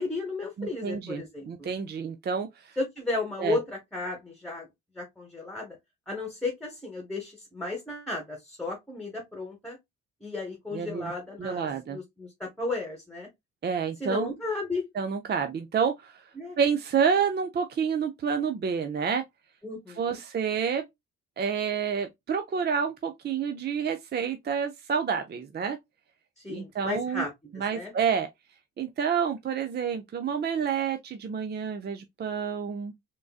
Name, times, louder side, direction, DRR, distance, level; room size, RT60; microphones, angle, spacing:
voice 1, 0.0-1.7 2.8-4.7 4.9-5.8 6.1-9.8 10.2-13.3 14.0-14.8 16.3-16.6 19.6-20.2 26.4-27.9, left 2 dB, 5° left, 1.1 m, -34 dB
voice 2, 0.6-2.7 3.4-3.6 10.7-11.1 11.4-12.0 13.6-14.3 15.0-16.2 16.6-19.2 20.0-20.8 21.4-25.8 26.5-27.2 27.5-28.3 28.8-32.9, right 6 dB, 35° right, 0.5 m, -29 dB
3.7 x 2.6 x 2.3 m
cardioid pair, 90°, 30 cm